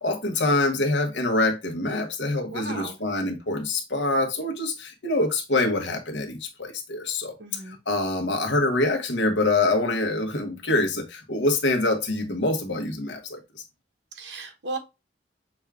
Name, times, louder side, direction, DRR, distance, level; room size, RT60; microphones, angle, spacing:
voice 1, 0.0-13.6, left 2 dB, 75° left, 1.1 m, -25 dB
voice 2, 2.5-3.0 7.4-7.8 14.1-14.8, right 3 dB, 70° right, 1.1 m, -35 dB
6.2 x 2.4 x 3.3 m
head